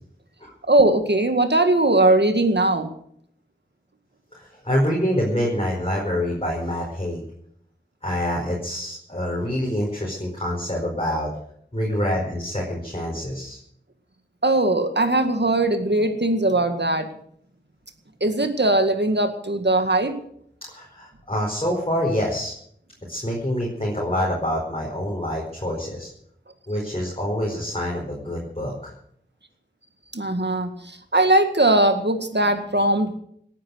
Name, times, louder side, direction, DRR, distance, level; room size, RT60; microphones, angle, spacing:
voice 1, 0.7-2.9 14.4-17.1 18.2-20.2 30.1-33.2, right 2 dB, 65° right, 7 dB, 2.0 m, -20 dB
voice 2, 4.3-7.2 8.0-11.3 11.7-13.6 20.7-22.5 23.1-26.1 26.7-28.9, equal, 30° left, -3 dB, 4.7 m, -26 dB
18.5 x 10.5 x 6.5 m, 0.67 s
wide cardioid pair, 40°, 19 cm